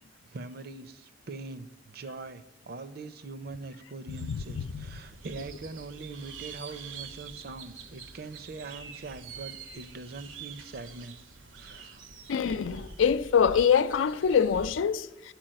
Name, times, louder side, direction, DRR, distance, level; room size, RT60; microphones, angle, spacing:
voice 1, 0.2-11.2 11.6-12.0, right 3 dB, 55° right, 0.5 m, -42 dB
sound 1, 4.1-14.8, right 4 dB, 90° right, 0.8 m, -46 dB
voice 2, 4.2-4.9 12.3-15.3, left 7 dB, 90° left, 0.4 m, -25 dB
9.0 x 4.7 x 7.5 m
head